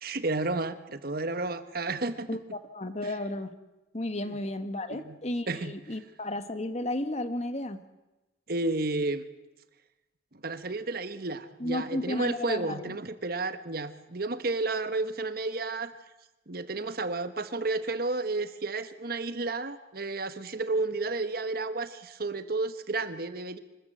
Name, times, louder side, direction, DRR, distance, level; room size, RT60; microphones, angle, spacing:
voice 1, 0.0-2.3 4.2-4.4 4.9-5.2 5.5-5.8 8.5-9.2 10.3-15.9 16.5-23.6, right 3 dB, 55° right, 11 dB, 1.2 m, -32 dB
voice 2, 2.7-3.5 3.9-7.8 11.6-13.0, left 1 dB, 35° left, 10 dB, 1.3 m, -33 dB
25.0 x 13.5 x 7.9 m, 1.1 s
head